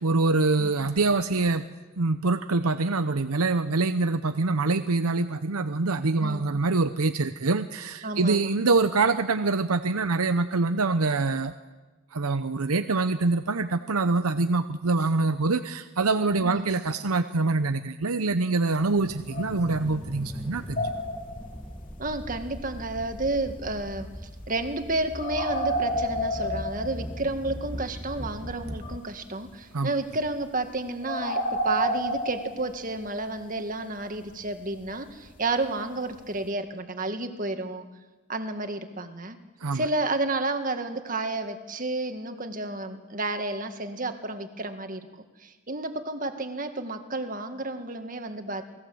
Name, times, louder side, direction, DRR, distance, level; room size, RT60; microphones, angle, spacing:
voice 1, 0.0-1.7 2.0-11.5 12.1-20.9 29.7-29.9 39.6-39.8, right 3 dB, 90° right, 10 dB, 0.8 m, -25 dB
voice 2, 8.0-8.6 16.4-16.7 22.0-24.1 24.5-37.9 38.3-39.4 39.7-45.1 45.4-48.6, right 2 dB, 40° right, 7 dB, 1.9 m, -31 dB
sound 1, 18.8-18.9 19.3-20.2 20.5-21.6 25.2-27.2 28.0-28.1 28.3-28.4 28.8-29.1 30.0-30.4 31.0-33.0 35.3-35.4 36.1-36.2, equal, 35° left, 2.9 m, -30 dB
sound 2, 19.0-29.0, equal, ahead, 1.2 m, -39 dB
28.0 x 20.0 x 7.9 m, 1.2 s
head